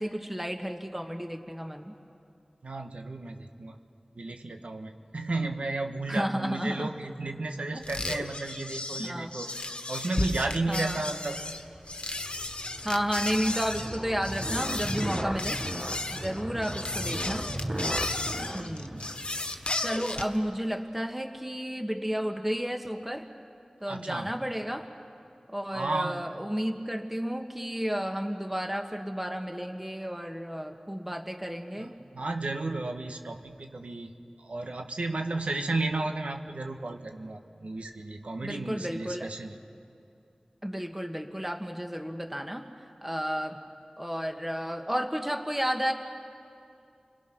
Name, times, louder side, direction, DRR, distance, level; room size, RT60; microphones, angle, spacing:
voice 1, 0.0-1.9 6.1-6.9 7.7-7.8 9.0-9.3 10.7-11.0 12.8-15.6 16.1-17.5 18.5-19.0 19.8-23.3 23.8-24.9 25.5-31.9 38.4-39.3 40.6-42.6 43.0-43.6 44.0-45.9, equal, 10° right, 4 dB, 1.5 m, -32 dB
voice 2, 2.6-3.8 4.1-9.5 9.9-11.4 16.4-16.7 18.3-19.1 23.9-24.3 25.7-26.3 31.8-31.9 32.1-34.1 34.4-39.6, right 2 dB, 85° right, 4 dB, 1.3 m, -33 dB
sound 1, 7.8-20.4, left 2 dB, 60° left, 1.3 m, -34 dB
sound 2, 11.1-20.1, right 1 dB, 35° right, 1.3 m, -37 dB
29.5 x 22.0 x 6.0 m, 2.5 s
wide cardioid pair, 45°, 2 cm